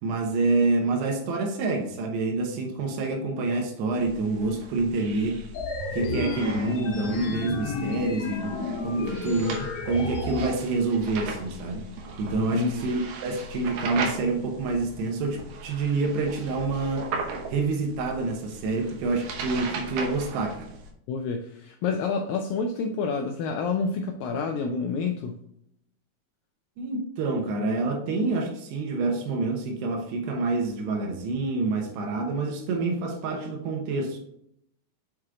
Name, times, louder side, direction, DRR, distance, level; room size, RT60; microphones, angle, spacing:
voice 1, 0.0-5.4 5.9-11.9 12.2-17.1 17.5-20.7 26.8-34.2, right 3 dB, 90° right, 1 dB, 3.2 m, -27 dB
sound 1, 3.9-20.9, right 3 dB, 70° right, 2.3 m, -38 dB
sound 2, 5.5-10.5, left 3 dB, 55° left, 2.0 m, -32 dB
voice 2, 12.4-12.8 21.1-25.4, left 5 dB, 85° left, 4 dB, 2.0 m, -28 dB
7.2 x 4.9 x 3.8 m, 0.74 s
omnidirectional pair, 4.7 m